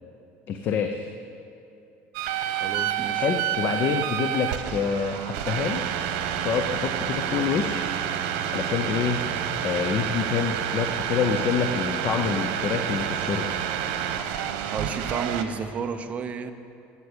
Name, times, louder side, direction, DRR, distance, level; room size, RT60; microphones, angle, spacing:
voice 1, 0.5-1.1 3.1-5.8 6.4-7.9 8.5-9.2 9.6-13.5, left 7 dB, 40° left, 6 dB, 0.7 m, -27 dB
sound 1, 2.1-15.4, right 9 dB, 85° right, 1.0 m, -29 dB
voice 2, 2.5-3.3 14.7-16.5, right 6 dB, 25° right, 8 dB, 0.7 m, -31 dB
13.0 x 8.2 x 8.1 m, 2.7 s
cardioid pair, 155°, 5 cm